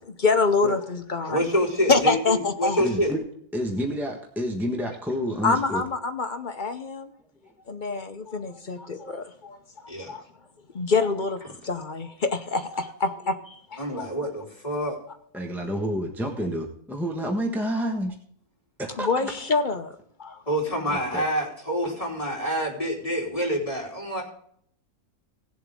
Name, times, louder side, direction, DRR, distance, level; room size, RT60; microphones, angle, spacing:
voice 1, 0.0-1.5 1.9-2.8 5.4-7.1 7.7-9.6 10.1-10.2 10.7-14.1 19.0-19.9 20.2-20.4, left 4 dB, 40° left, 0.8 m, -26 dB
voice 2, 1.3-3.1 9.9-10.2 13.8-15.0 20.5-24.2, equal, 25° left, 3.6 m, -27 dB
voice 3, 2.8-3.2 3.5-5.8 10.1-10.2 15.3-18.1 18.8-19.1 20.9-21.2, equal, ahead, 1.2 m, -29 dB
18.0 x 7.4 x 3.7 m
omnidirectional pair, 1.5 m